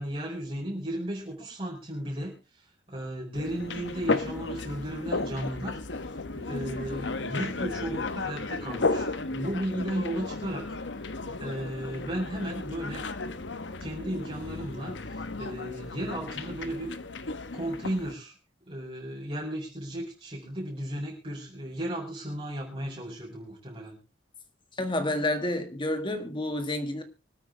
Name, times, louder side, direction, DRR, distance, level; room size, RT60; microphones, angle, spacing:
voice 1, 0.0-6.0 6.3-10.7 11.4-13.0 13.8-16.9 17.5-18.3 18.7-24.0, right 1 dB, 30° right, 4.5 m, -35 dB
sound 1, 3.3-18.1, left 3 dB, 80° left, 1.1 m, -34 dB
voice 2, 24.8-27.0, left 1 dB, 25° left, 1.8 m, -29 dB
25.0 x 8.9 x 3.3 m
head